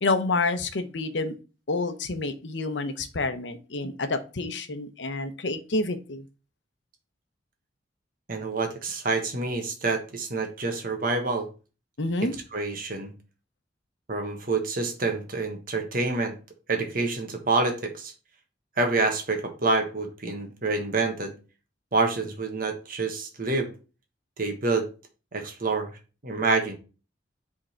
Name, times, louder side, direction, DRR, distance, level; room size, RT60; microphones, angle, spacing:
voice 1, 0.0-1.3 1.7-6.2 12.0-12.3, left 3 dB, 75° left, 0.9 m, -28 dB
voice 2, 8.3-11.5 12.5-13.1 14.1-16.4 16.7-18.1 18.8-21.3 21.9-23.7 24.4-24.9 25.3-25.9 26.2-26.8, right 3 dB, 50° right, 1.4 m, -27 dB
7.7 x 3.8 x 4.4 m
head